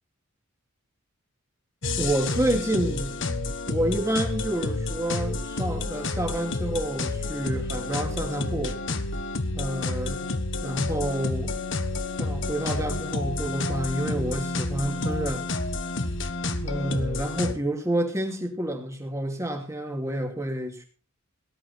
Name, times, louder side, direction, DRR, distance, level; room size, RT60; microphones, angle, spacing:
sound 1, 1.8-17.6, left 2 dB, 55° left, 1.4 m, -30 dB
voice 1, 2.0-3.3 3.7-8.8 9.5-10.3 10.6-11.5 12.2-15.5 16.6-20.8, right 1 dB, 15° right, 2.5 m, -29 dB
18.0 x 11.0 x 4.3 m
head